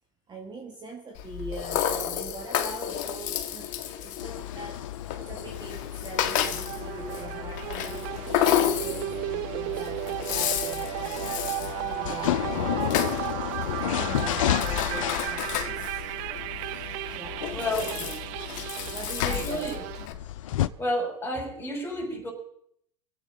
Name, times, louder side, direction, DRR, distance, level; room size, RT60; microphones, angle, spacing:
voice 1, 0.3-4.8 5.2-8.1 8.5-12.9 13.7-15.8 17.1-17.5 17.9-18.3 18.8-19.9, right 2 dB, 25° right, 1 dB, 2.5 m, -42 dB
Rattle (instrument), 1.2-20.1, left 10 dB, 55° left, 1.7 m, -32 dB
sound 1, 4.2-20.7, left 12 dB, 85° left, 0.6 m, -33 dB
sound 2, 6.3-20.1, right 19 dB, 60° right, 0.6 m, -35 dB
voice 2, 17.5-18.1 19.2-19.8 20.8-22.3, left 1 dB, 15° left, 1 dB, 5.6 m, -31 dB
24.5 x 8.4 x 5.3 m, 0.70 s
supercardioid pair, 110°, 16 cm